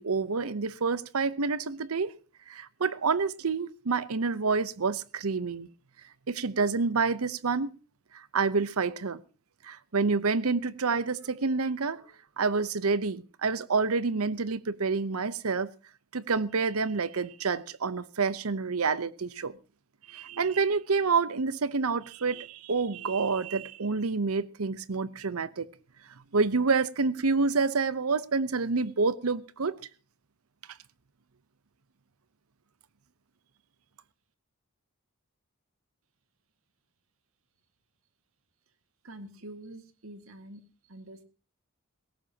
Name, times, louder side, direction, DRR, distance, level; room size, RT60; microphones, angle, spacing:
voice 1, 0.0-2.1 2.5-5.7 6.3-7.7 8.1-9.2 9.6-12.0 12.4-15.7 16.1-19.5 20.1-25.7 26.3-29.8, right 4 dB, 90° right, 0.9 m, -28 dB
voice 2, 39.0-40.6 40.9-41.2, right 1 dB, 75° right, 2.0 m, -46 dB
19.0 x 17.0 x 2.9 m
head